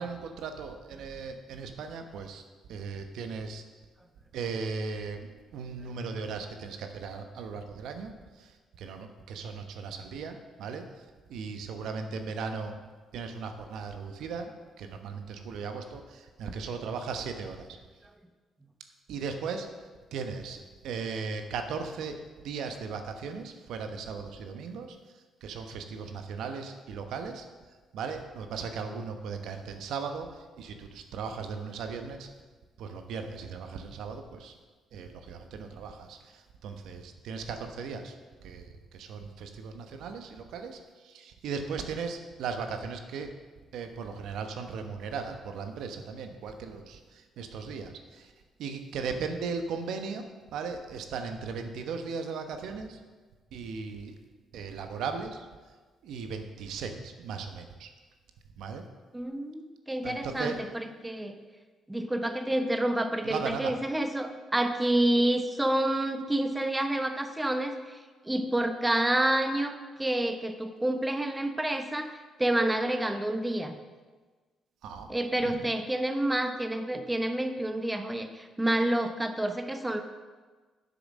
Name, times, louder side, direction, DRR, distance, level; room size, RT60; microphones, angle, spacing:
voice 1, 0.0-2.4 2.7-3.6 4.3-12.8 13.1-14.5 14.8-17.7 19.1-19.7 20.1-22.2 22.4-25.0 25.4-27.5 27.9-32.3 32.8-34.5 34.9-38.1 38.4-43.3 43.7-48.3 48.6-50.3 50.5-53.0 53.5-54.1 54.5-55.5 56.0-57.9 58.6-58.8 60.0-60.6 63.2-63.7 74.8-75.6, right 5 dB, 80° right, 6 dB, 0.9 m, -37 dB
voice 2, 59.1-61.4 61.9-73.8 75.1-80.0, right 1 dB, 10° right, 7 dB, 0.8 m, -29 dB
7.8 x 7.0 x 6.3 m, 1.4 s
cardioid pair, 90°, 0 cm